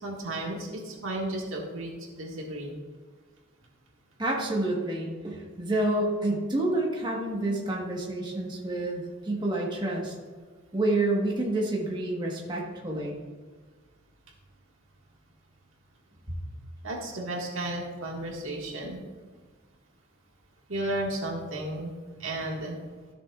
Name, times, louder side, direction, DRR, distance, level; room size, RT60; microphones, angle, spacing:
voice 1, 0.0-2.7 16.8-19.0 20.7-21.9 22.2-22.8, right 1 dB, 70° right, -1 dB, 1.7 m, -33 dB
voice 2, 4.2-10.1 10.7-13.2, right 2 dB, 20° right, -2 dB, 1.3 m, -28 dB
13.5 x 6.9 x 2.4 m, 1.5 s
head